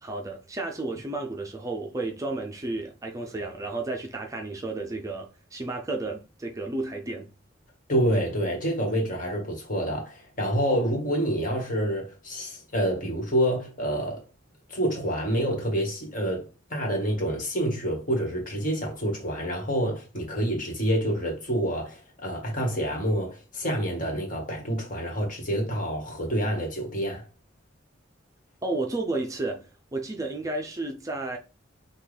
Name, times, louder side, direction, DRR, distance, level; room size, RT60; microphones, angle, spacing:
voice 1, 0.0-7.3 28.6-31.4, right 2 dB, 15° right, 0.4 m, -32 dB
voice 2, 7.9-14.2 14.7-27.2, equal, 45° left, 1.5 m, -27 dB
5.9 x 2.3 x 3.3 m
head